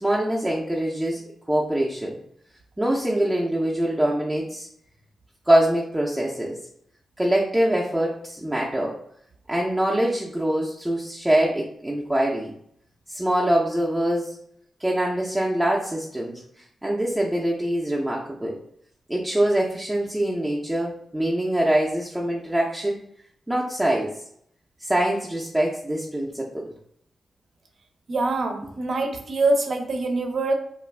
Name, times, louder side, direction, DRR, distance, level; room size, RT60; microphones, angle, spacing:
voice 1, 0.0-1.2 1.5-2.2 2.8-4.7 5.5-6.6 7.2-9.0 9.5-12.5 13.1-14.4 14.8-16.4 16.8-18.6 19.1-23.0 23.5-24.1 24.8-26.6, right 1 dB, 10° right, -4 dB, 0.5 m, -24 dB
voice 2, 28.1-30.5, right 2 dB, 65° right, 4 dB, 0.5 m, -24 dB
2.4 x 2.3 x 3.2 m, 0.67 s
cardioid pair, 60°, 0 cm